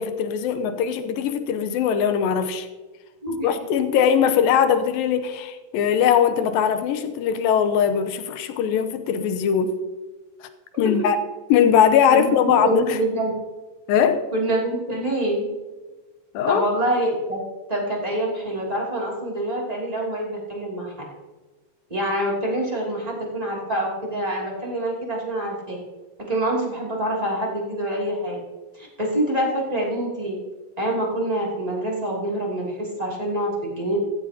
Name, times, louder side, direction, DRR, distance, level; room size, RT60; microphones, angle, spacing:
voice 1, 0.0-2.7 3.4-9.8 10.4-10.5 10.8-11.2 11.5-13.0 13.9-14.3 16.3-16.7, left 8 dB, 85° left, 2.6 m, -20 dB
voice 2, 12.1-13.3 14.3-15.5 16.5-17.4 17.7-20.9 21.9-25.8 26.3-28.4 28.7-30.4 30.8-34.0, right 1 dB, 10° right, 2.3 m, -26 dB
16.0 x 14.0 x 2.9 m
omnidirectional pair, 4.0 m